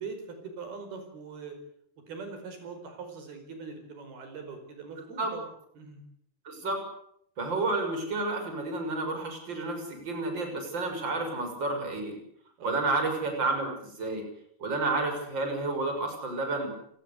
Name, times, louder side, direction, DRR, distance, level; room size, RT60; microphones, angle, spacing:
voice 1, 0.0-1.6 2.1-5.5 5.8-6.0 12.6-12.9, right 5 dB, 80° right, 6 dB, 6.8 m, -42 dB
voice 2, 6.4-6.8 7.4-12.2 12.6-13.7 14.0-14.2 14.6-16.7, right 2 dB, 30° right, 5 dB, 6.8 m, -30 dB
29.5 x 19.5 x 8.2 m, 0.69 s
omnidirectional pair, 4.3 m